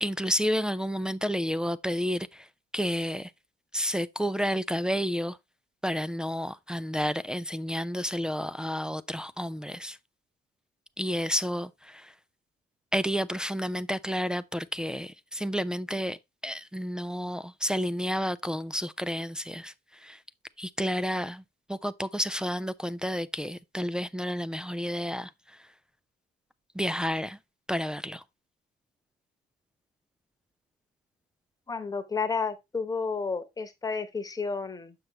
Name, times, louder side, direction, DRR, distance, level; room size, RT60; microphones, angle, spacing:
voice 1, 0.0-2.4 2.7-3.3 3.7-5.4 5.8-10.0 11.0-12.1 12.9-16.2 16.4-19.7 20.0-20.2 20.6-21.4 21.7-25.3 26.8-27.4 27.7-28.2, equal, 5° right, 0.3 m, -30 dB
voice 2, 31.7-34.9, left 4 dB, 20° left, 1.0 m, -31 dB
6.5 x 6.0 x 3.0 m
cardioid pair, 110°, 17 cm